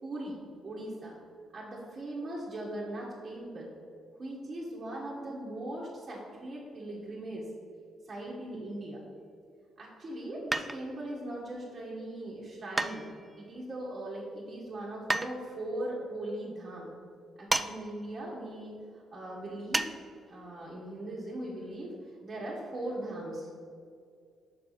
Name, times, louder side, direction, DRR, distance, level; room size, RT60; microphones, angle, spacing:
voice 1, 0.0-1.1 1.5-3.7 4.2-7.5 8.1-9.0 9.8-13.0 13.4-16.9 17.4-19.9 20.3-23.6, right 1 dB, 35° right, -6 dB, 1.5 m, -39 dB
sound 1, 10.5-11.1 12.8-13.5 15.1-15.3 17.5-17.7 18.0-18.1 19.7-19.9 20.3-20.4, right 2 dB, 15° right, 0.4 m, -30 dB
6.2 x 4.6 x 5.9 m, 2.3 s
cardioid pair, 90°, 0 cm